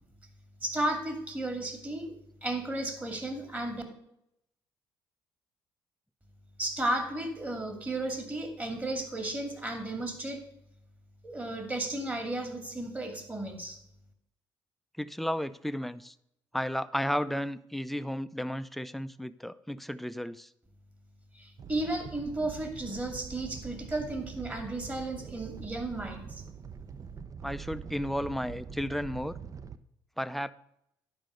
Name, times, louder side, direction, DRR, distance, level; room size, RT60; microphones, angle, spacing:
voice 1, 0.6-2.1 2.4-3.8 6.6-10.4 11.2-13.8 21.3-26.4, right 1 dB, 20° right, 5 dB, 2.4 m, -34 dB
voice 2, 15.0-16.1 16.5-20.5 27.4-29.4 30.2-30.5, equal, ahead, 14 dB, 0.5 m, -33 dB
Animal, 21.6-29.8, right 6 dB, 40° right, 0.7 m, -44 dB
11.0 x 5.3 x 6.5 m, 0.77 s
cardioid pair, 80°, 9 cm